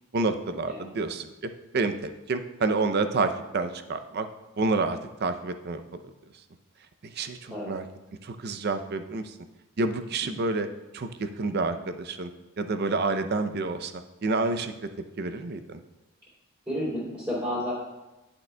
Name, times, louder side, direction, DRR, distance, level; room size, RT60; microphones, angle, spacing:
voice 1, 0.1-1.3 1.7-4.3 4.6-6.1 7.0-7.8 8.2-9.3 9.8-10.7 10.9-12.3 12.6-13.9 14.2-14.9 15.2-15.8, right 3 dB, 50° right, 9 dB, 0.5 m, -28 dB
voice 2, 16.7-17.7, equal, 15° right, -12 dB, 2.8 m, -31 dB
10.5 x 8.7 x 2.2 m, 1.0 s
head